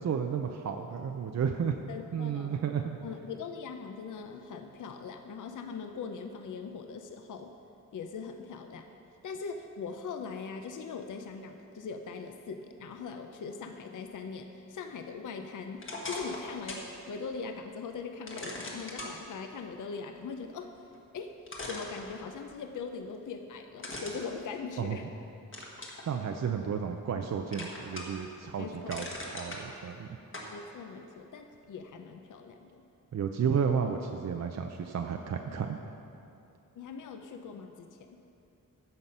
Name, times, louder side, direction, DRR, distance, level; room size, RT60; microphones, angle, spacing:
voice 1, 0.0-1.8 2.1-3.0 24.8-25.0 26.1-29.1 29.3-30.1 33.1-35.8, right 7 dB, 50° right, 5 dB, 0.5 m, -32 dB
voice 2, 1.9-2.7 3.0-7.5 7.9-8.9 9.2-20.7 21.1-21.4 21.7-25.1 28.6-29.1 30.5-32.8 36.8-38.1, left 5 dB, 65° left, 6 dB, 0.6 m, -41 dB
sound 1, 15.8-16.9 17.3-17.4 18.3-19.1 20.9-21.0 21.5-22.6 23.8-25.1 25.5-26.0 26.6-27.2 27.5-28.3 28.6-29.6 30.3-30.5, left 2 dB, 35° left, 1.4 m, -40 dB
15.0 x 5.7 x 5.4 m, 2.7 s
wide cardioid pair, 165°, 34 cm